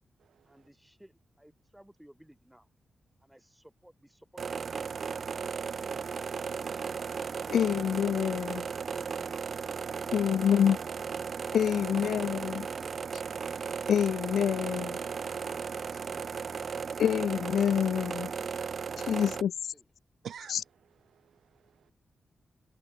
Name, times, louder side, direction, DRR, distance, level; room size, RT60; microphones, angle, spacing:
voice 1, 0.5-2.7 3.2-5.3 8.8-9.4 19.7-19.9, equal, 5° right, 4.4 m, -56 dB
sound 1, 4.4-19.4, right 6 dB, 45° right, 0.3 m, -36 dB
sound 2, 4.7-11.3 12.7-19.3, left 6 dB, 45° left, 7.3 m, -65 dB
voice 2, 7.5-8.7 10.1-10.8 11.5-12.7 13.9-15.0 17.0-18.3 19.1-19.5 20.5-20.6, left 9 dB, 80° left, 0.4 m, -27 dB
voice 3, 20.2-21.6, right 8 dB, 70° right, 2.8 m, -47 dB
wide cardioid pair, 165°, 0 cm